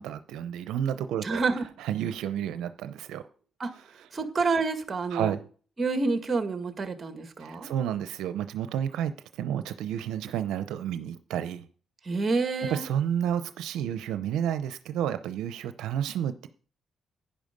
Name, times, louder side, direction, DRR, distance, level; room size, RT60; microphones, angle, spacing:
voice 1, 0.0-1.4 1.8-3.2 5.1-5.4 7.4-11.7 12.6-16.5, right 9 dB, 85° right, 11 dB, 0.6 m, -31 dB
voice 2, 1.2-1.6 3.6-3.7 4.1-5.3 5.8-7.7 12.1-12.9, right 4 dB, 35° right, 8 dB, 1.9 m, -28 dB
10.5 x 10.0 x 5.2 m, 0.43 s
cardioid pair, 90°, 0 cm